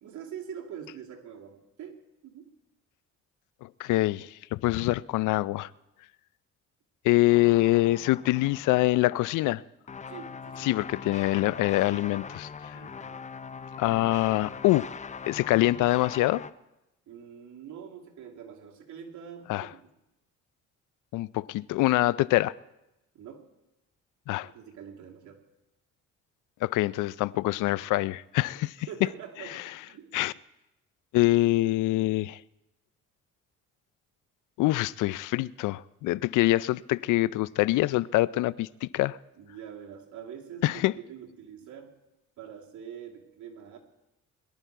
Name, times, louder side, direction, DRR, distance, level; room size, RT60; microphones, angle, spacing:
voice 1, 0.0-2.5 10.1-10.7 12.7-13.2 17.1-19.8 23.1-23.4 24.4-25.4 28.9-30.1 39.4-40.8 41.1-41.9 42.4-43.8, right 8 dB, 75° right, 2.5 m, -44 dB
voice 2, 3.6-5.7 7.0-9.6 10.6-12.8 13.8-14.9 15.3-16.4 19.5-19.7 21.1-22.5 24.3-24.5 26.6-28.9 29.5-29.6 30.1-30.3 31.1-32.4 34.6-39.2 40.6-40.9, left 17 dB, 85° left, 0.5 m, -25 dB
sound 1, 7.3-9.3 9.9-16.5, left 6 dB, 25° left, 0.5 m, -42 dB
22.0 x 11.5 x 4.6 m
cardioid pair, 90°, 30 cm